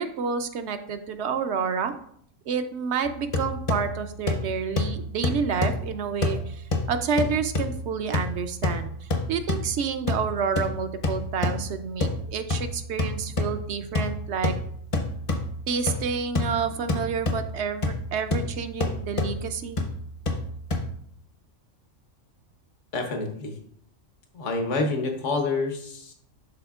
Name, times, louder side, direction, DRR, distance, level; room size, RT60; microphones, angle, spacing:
voice 1, 0.0-1.9 2.5-8.9 9.3-14.5 15.7-19.8, right 6 dB, 70° right, 8 dB, 0.8 m, -29 dB
sound 1, 3.1-20.9, left 2 dB, 35° left, 0.6 m, -30 dB
voice 2, 22.9-23.6 24.3-26.1, left 3 dB, 75° left, 4 dB, 1.3 m, -28 dB
11.5 x 4.1 x 2.4 m, 0.65 s
omnidirectional pair, 1.3 m